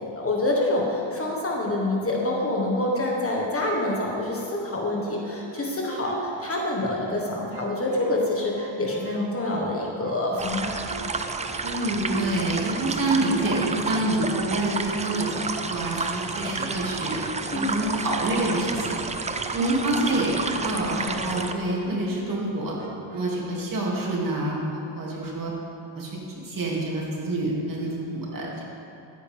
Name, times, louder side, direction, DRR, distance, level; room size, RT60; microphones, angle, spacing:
voice 1, 0.0-10.8 17.5-17.7, left 1 dB, 25° left, -2 dB, 1.5 m, -26 dB
sound 1, 5.4-7.2 7.5-10.2 10.5-16.4 16.8-22.5 22.8-23.6, right 6 dB, 85° right, 1.0 m, -42 dB
sound 2, 10.4-21.5, right 4 dB, 15° right, 0.3 m, -31 dB
voice 2, 11.6-15.3 15.6-17.2 17.5-19.3 19.5-22.7 23.1-25.5 25.9-26.1 26.4-28.6, right 1 dB, 40° right, -4 dB, 2.7 m, -27 dB
14.0 x 9.7 x 3.5 m, 2.7 s
cardioid pair, 120°, 49 cm